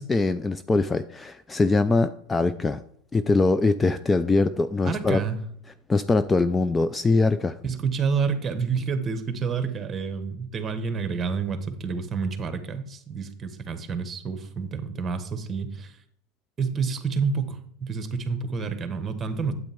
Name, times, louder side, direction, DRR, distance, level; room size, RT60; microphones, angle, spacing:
voice 1, 0.0-2.8 3.1-5.2 5.9-7.6, left 3 dB, 15° left, 13 dB, 0.4 m, -22 dB
voice 2, 4.8-5.4 7.6-16.0 16.6-19.5, right 5 dB, 25° right, 9 dB, 1.3 m, -29 dB
8.8 x 8.0 x 3.5 m, 0.65 s
hypercardioid pair, 105°, 0 cm